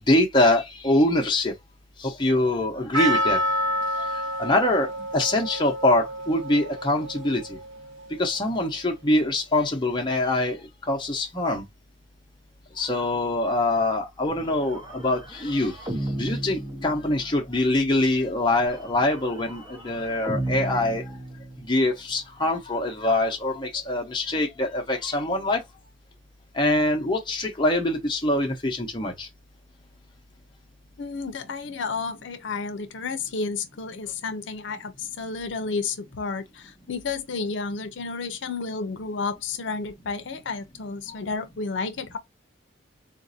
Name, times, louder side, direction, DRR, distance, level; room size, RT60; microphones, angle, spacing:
voice 1, 0.1-1.5 2.0-3.4 4.4-7.6 8.2-10.6 10.9-11.6 12.8-15.7 16.2-21.0 21.7-25.6 26.5-29.3, left 1 dB, 25° left, 0.7 m, -24 dB
Percussion, 2.9-7.9, equal, 85° right, 1.1 m, -28 dB
sound 1, 14.3-17.5 18.6-21.9, right 1 dB, 20° right, 0.7 m, -35 dB
voice 2, 31.0-42.2, left 4 dB, 75° left, 0.5 m, -31 dB
3.9 x 2.5 x 2.5 m
head